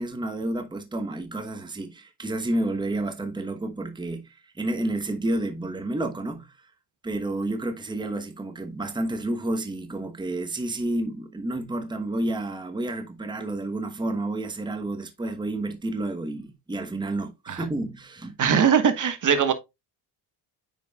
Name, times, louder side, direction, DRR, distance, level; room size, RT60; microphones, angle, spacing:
voice 1, 0.0-6.7 7.0-18.4, right 2 dB, 10° right, 1.0 m, -30 dB
voice 2, 18.4-19.5, right 7 dB, 40° right, 1.4 m, -21 dB
9.0 x 4.7 x 2.3 m
cardioid pair, 90°, 45 cm